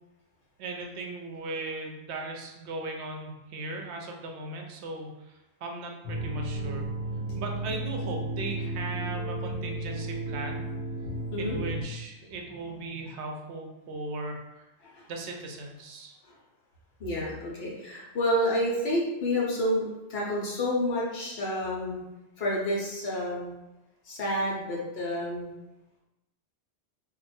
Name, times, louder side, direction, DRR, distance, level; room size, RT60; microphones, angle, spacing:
voice 1, 0.6-6.9 7.4-10.6 11.4-14.7 15.1-16.2, right 2 dB, 75° right, 2 dB, 0.8 m, -38 dB
sound 1, 6.0-11.8, right 2 dB, 40° left, 0.7 m, -33 dB
voice 2, 17.0-22.0 22.4-23.5 24.0-25.6, left 1 dB, 65° left, -4 dB, 1.1 m, -29 dB
2.6 x 2.2 x 4.0 m, 0.99 s
omnidirectional pair, 1.2 m